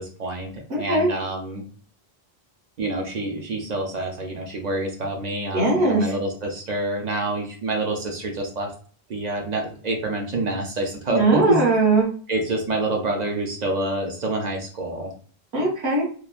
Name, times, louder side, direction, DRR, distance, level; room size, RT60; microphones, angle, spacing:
voice 1, 0.0-1.6 2.8-8.7 9.1-11.6 12.3-15.1, right 2 dB, 50° right, 2 dB, 0.6 m, -27 dB
voice 2, 0.7-1.1 5.5-6.1 11.1-12.1 15.5-16.0, right 2 dB, 75° right, -4 dB, 1.3 m, -20 dB
3.0 x 2.1 x 2.4 m, 0.44 s
omnidirectional pair, 1.0 m